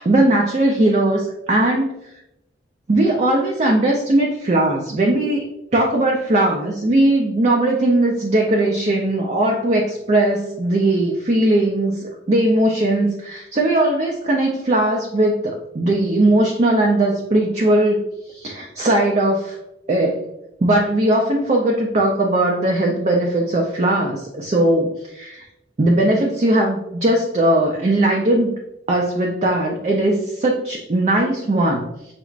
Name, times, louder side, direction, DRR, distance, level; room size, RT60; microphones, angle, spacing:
voice 1, 0.0-1.9 2.9-5.4 5.7-18.0 18.3-19.6 19.9-20.3 20.6-25.4 25.8-28.6 28.9-31.8, right 1 dB, 40° right, 0 dB, 0.4 m, -19 dB
5.7 x 2.0 x 2.4 m, 0.84 s
head